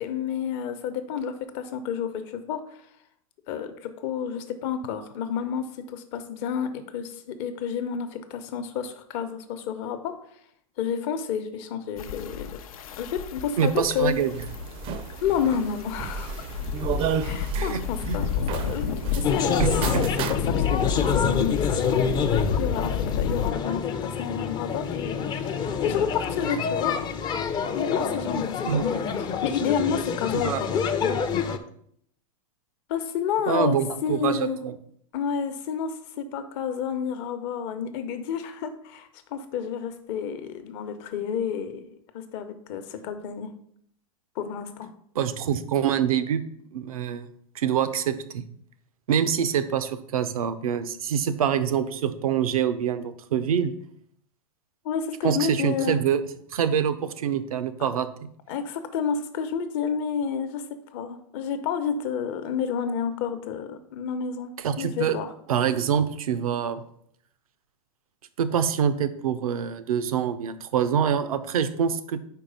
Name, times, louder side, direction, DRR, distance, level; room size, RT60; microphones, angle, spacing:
voice 1, 0.0-2.8 3.5-10.2 10.8-12.6 13.0-14.1 15.2-16.3 17.2-19.6 19.9-27.0 27.7-28.9 29.2-31.2 32.9-34.6 35.1-43.5 44.4-44.9 54.8-56.0 58.5-60.6 60.9-64.5 64.8-65.3, left 7 dB, 50° left, 8 dB, 0.8 m, -30 dB
sound 1, 12.0-23.5, left 7 dB, 75° left, 0.6 m, -31 dB
voice 2, 13.6-14.3 17.5-17.8 18.1-18.2 19.6-20.0 28.7-28.8 30.3-30.6 33.5-34.7 45.2-46.4 46.7-47.2 47.6-48.4 49.1-53.7 55.2-56.2 56.5-58.1 64.6-65.2 65.5-66.8 68.4-72.3, right 8 dB, 85° right, 12 dB, 0.6 m, -25 dB
sound 2, 13.8-20.3, right 6 dB, 30° right, 0.4 m, -32 dB
sound 3, 19.2-31.6, left 6 dB, 25° left, 0.5 m, -27 dB
4.8 x 4.6 x 5.2 m, 0.67 s
hypercardioid pair, 120°, 18 cm